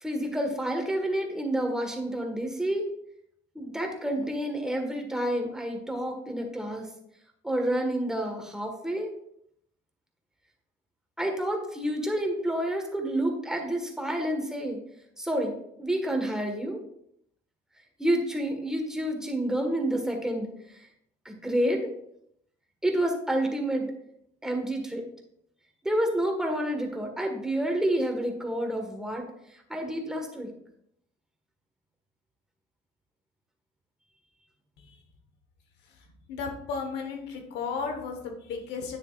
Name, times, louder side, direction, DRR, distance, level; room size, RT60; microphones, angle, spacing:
voice 1, 0.0-2.9 3.5-6.9 7.4-9.1 11.2-14.8 15.2-16.8 18.0-20.5 21.2-21.9 22.8-23.9 24.4-25.1 25.8-29.3 29.7-30.5, right 1 dB, 5° right, 2 dB, 1.5 m, -29 dB
voice 2, 36.3-39.0, left 5 dB, 85° left, 3 dB, 1.2 m, -34 dB
9.6 x 6.8 x 2.4 m, 0.74 s
cardioid pair, 110°, 17 cm